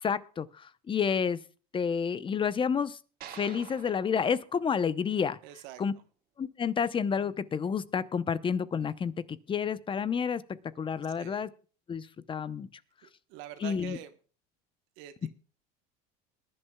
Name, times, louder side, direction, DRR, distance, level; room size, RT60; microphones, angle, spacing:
voice 1, 0.0-1.4 1.7-3.0 3.3-5.4 5.8-5.9 6.4-10.4 10.8-11.5 11.9-12.7 13.6-14.0 15.2-15.3, left 6 dB, 25° left, 16 dB, 0.8 m, -30 dB
sound 1, 3.2-5.6, right 10 dB, 50° right, 1.9 m, -49 dB
voice 2, 5.4-5.8 11.2-11.4 13.0-14.1 15.0-15.3, right 12 dB, 70° right, 9 dB, 1.2 m, -45 dB
21.5 x 11.0 x 2.3 m, 0.38 s
supercardioid pair, 105°, 20 cm